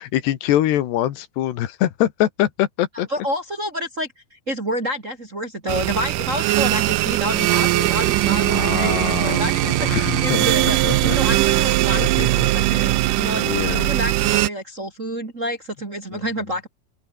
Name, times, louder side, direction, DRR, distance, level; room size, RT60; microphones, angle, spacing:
voice 1, 0.0-3.1 8.4-11.2 11.5-11.7 12.0-12.7 13.4-13.9 14.2-14.4 16.1-16.3, left 13 dB, 80° left, 3.7 m, -24 dB
voice 2, 3.1-10.8 11.0-16.7, equal, 25° right, 1.9 m, -29 dB
sound 1, 5.7-14.5, right 17 dB, 90° right, 1.8 m, -20 dB
sound 2, 7.8-13.2, right 14 dB, 70° right, 2.2 m, -27 dB
open air
omnidirectional pair, 4.8 m